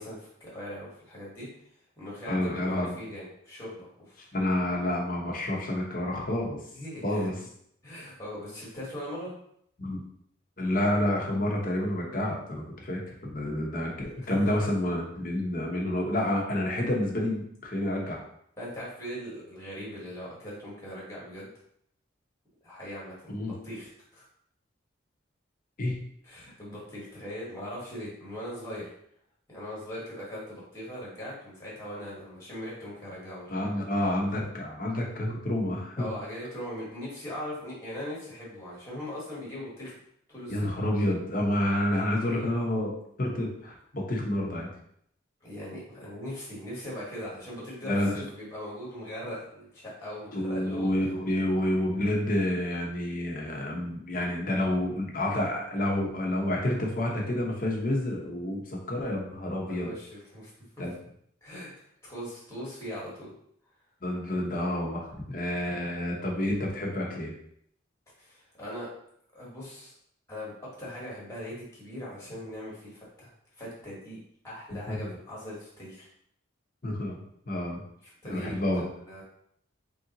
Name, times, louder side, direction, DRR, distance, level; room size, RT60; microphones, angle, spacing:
voice 1, 0.0-1.5 2.0-4.3 6.7-7.3 7.8-9.3 14.2-14.6 18.6-21.5 22.6-24.2 26.2-28.9 29.5-33.5 36.0-40.0 40.3-40.7 42.1-42.4 45.4-50.9 59.7-60.5 61.4-61.7 62.0-63.3 68.2-68.9 69.3-69.9 70.3-74.2 74.4-76.1 78.0-78.6 79.0-79.2, equal, 15° left, -6 dB, 1.1 m, -40 dB
voice 2, 2.3-2.9 4.3-6.6 7.0-7.3 9.8-10.0 10.6-18.2 23.3-23.5 25.8-26.0 33.5-36.1 40.5-42.9 43.2-44.7 47.8-48.2 50.3-59.9 60.8-60.9 64.0-67.4 74.7-75.1 76.8-77.2 77.5-77.8 78.3-78.8, left 1 dB, 45° left, -1 dB, 0.8 m, -29 dB
3.4 x 2.7 x 3.9 m, 0.70 s
head